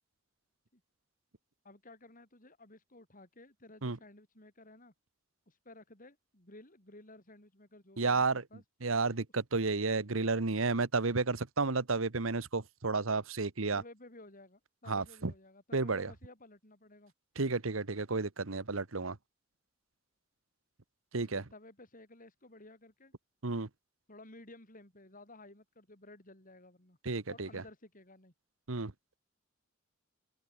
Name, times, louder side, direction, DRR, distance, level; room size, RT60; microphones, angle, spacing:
voice 1, 1.6-4.9 5.5-8.6 13.7-17.1 21.2-23.1 24.1-27.0 27.3-28.3, left 2 dB, 40° left, 7.6 m, -55 dB
voice 2, 8.0-8.4 8.8-13.8 14.9-15.3 15.7-16.1 17.4-19.2 21.1-21.4 23.4-23.7 27.0-27.6 28.7-28.9, right 3 dB, 80° right, 1.3 m, -32 dB
head